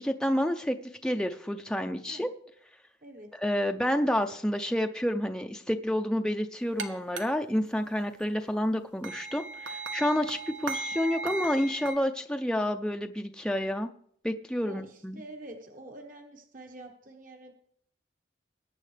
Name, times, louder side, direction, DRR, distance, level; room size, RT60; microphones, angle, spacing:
voice 1, 0.0-2.3 3.4-13.9 14.2-15.2, equal, 5° left, 4 dB, 0.5 m, -29 dB
sound 1, 6.8-6.9 7.2-7.3 9.0-12.0, right 3 dB, 80° right, 1.2 m, -36 dB
voice 2, 14.6-17.5, right 2 dB, 50° right, 3 dB, 1.2 m, -47 dB
21.0 x 9.2 x 3.3 m, 0.67 s
head